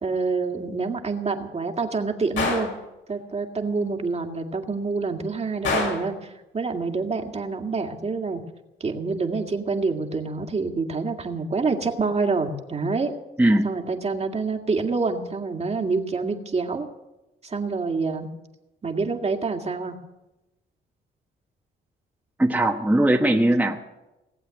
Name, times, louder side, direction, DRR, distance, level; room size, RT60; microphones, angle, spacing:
voice 1, 0.0-2.8 3.1-8.4 8.8-13.1 13.6-16.9 17.4-18.3 18.8-20.0, right 4 dB, 30° right, 4 dB, 2.0 m, -27 dB
Gunshot gunfire, 2.4-2.8 5.6-6.1, left 4 dB, 80° left, 5.5 m, -25 dB
voice 2, 22.4-23.8, right 1 dB, 10° right, 0 dB, 1.3 m, -19 dB
18.5 x 8.0 x 9.6 m, 0.99 s
cardioid pair, 90°, 20 cm